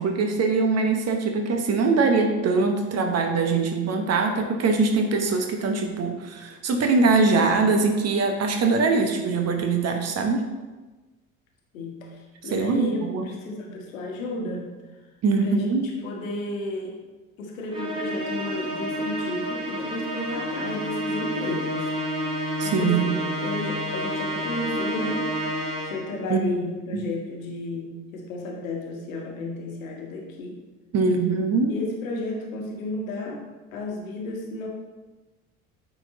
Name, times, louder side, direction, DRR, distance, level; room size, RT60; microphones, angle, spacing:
voice 1, 0.0-10.5 12.5-13.3 15.2-15.9 22.6-23.1 26.3-26.6 26.9-27.1 30.9-31.8, right 4 dB, 35° right, 5 dB, 1.1 m, -22 dB
voice 2, 11.7-13.0 13.2-14.7 15.4-16.9 17.4-21.9 22.2-23.2 23.4-25.2 25.8-30.6 31.7-33.4 33.7-34.7, left 2 dB, 70° left, 1 dB, 1.3 m, -33 dB
Musical instrument, 17.7-26.2, equal, 10° right, 1.9 m, -29 dB
9.0 x 4.1 x 3.9 m, 1.2 s
figure-of-eight pair, 55°, 42 cm